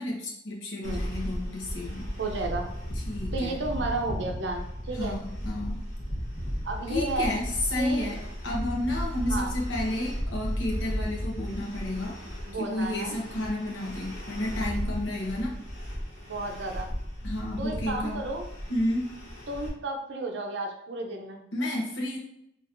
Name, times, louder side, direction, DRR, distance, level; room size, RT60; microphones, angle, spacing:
voice 1, 0.0-2.1 3.1-3.6 4.9-5.8 6.9-8.2 8.4-12.1 12.6-15.5 17.2-18.2 18.7-19.1 21.5-22.2, left 1 dB, 85° left, -2 dB, 0.9 m, -31 dB
sound 1, 0.8-19.7, equal, 40° left, 1.0 m, -35 dB
voice 2, 2.2-2.7 3.3-5.2 6.6-7.4 7.8-8.1 9.3-9.5 12.5-13.2 16.3-16.9 17.6-18.5 19.5-21.4, right 2 dB, 70° right, 3 dB, 0.6 m, -32 dB
4.3 x 2.9 x 2.5 m, 0.77 s
head